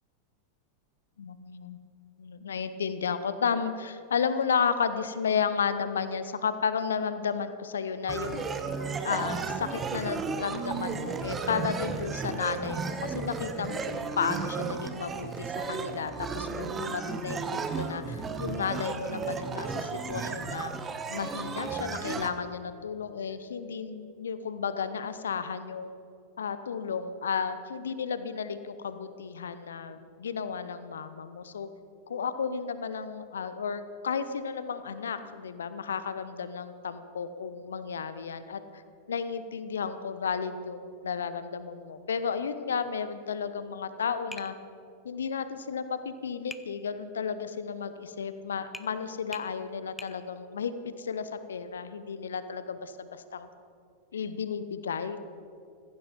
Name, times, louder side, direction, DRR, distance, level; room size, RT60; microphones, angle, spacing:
voice 1, 1.2-1.8 2.2-8.4 9.0-20.7 21.1-25.9 26.4-31.7 32.1-38.8 39.1-44.5 45.0-53.5 54.1-55.2, left 6 dB, 65° left, 12 dB, 0.9 m, -33 dB
sound 1, 8.1-22.3, right 5 dB, 20° right, 1.1 m, -34 dB
Tap, 44.3-44.6 46.5-46.7 48.7-48.9 49.3-49.5 50.0-50.2, left 2 dB, 10° left, 0.8 m, -42 dB
15.5 x 15.5 x 5.3 m, 2.4 s
figure-of-eight pair, 90°, 0 cm